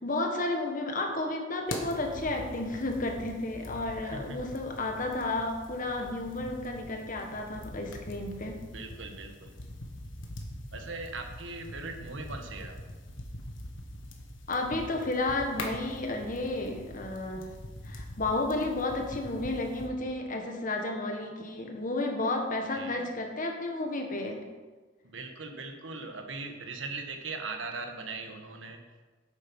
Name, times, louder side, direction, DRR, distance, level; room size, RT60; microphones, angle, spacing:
voice 1, 0.0-8.6 14.5-17.5 17.8-24.4, left 2 dB, 45° left, 3 dB, 1.5 m, -32 dB
sound 1, 1.7-19.9, left 1 dB, 85° left, 1.5 m, -43 dB
voice 2, 4.0-4.4 8.7-9.5 10.7-12.8 22.7-23.1 25.0-28.8, right 3 dB, 80° right, 5 dB, 1.3 m, -40 dB
9.0 x 8.2 x 5.4 m, 1.3 s
head